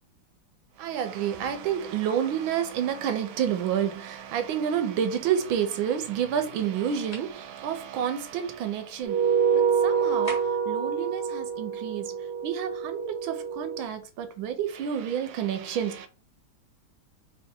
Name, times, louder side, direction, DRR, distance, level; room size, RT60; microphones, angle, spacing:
voice 1, 0.8-10.4 10.7-12.1 12.4-16.1, right 9 dB, 85° right, 1.5 m, -29 dB
sound 1, 7.1-7.4 10.2-10.7, equal, 20° left, 1.3 m, -39 dB
sound 2, 9.0-13.8, right 7 dB, 60° right, 1.4 m, -26 dB
3.4 x 3.4 x 4.3 m
omnidirectional pair, 2.1 m